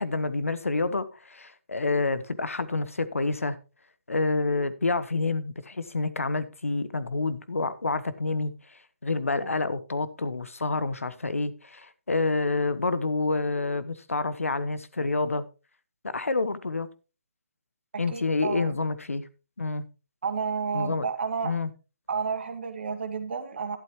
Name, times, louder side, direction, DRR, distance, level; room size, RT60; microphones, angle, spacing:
voice 1, 0.0-3.6 4.1-8.5 9.0-15.4 16.0-16.9 18.0-19.2 19.6-19.8 20.7-21.1 21.4-21.7, left 3 dB, 80° left, 1.3 m, -28 dB
voice 2, 17.9-18.8 20.2-21.5 22.1-23.8, right 5 dB, 55° right, 1.9 m, -31 dB
12.0 x 11.5 x 3.0 m
figure-of-eight pair, 150°, 7 cm